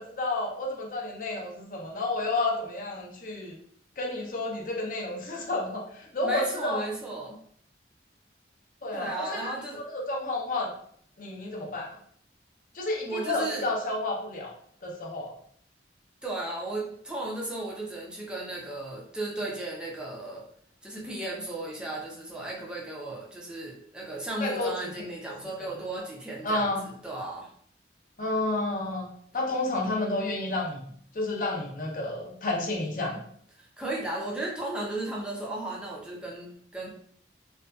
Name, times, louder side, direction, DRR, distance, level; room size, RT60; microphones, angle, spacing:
voice 1, 0.0-3.5 4.0-6.8 8.8-10.7 11.2-12.0 12.7-14.5 14.8-15.3 24.4-24.7 25.6-25.7 26.4-26.8 28.2-29.1 29.3-30.9 31.1-33.2, left 2 dB, 45° left, 0 dB, 0.6 m, -30 dB
voice 2, 6.2-7.4 8.9-9.8 13.0-13.7 16.2-20.4 20.8-27.5 33.6-36.9, right 2 dB, 5° right, -3 dB, 0.4 m, -35 dB
2.5 x 2.2 x 2.2 m, 0.62 s
head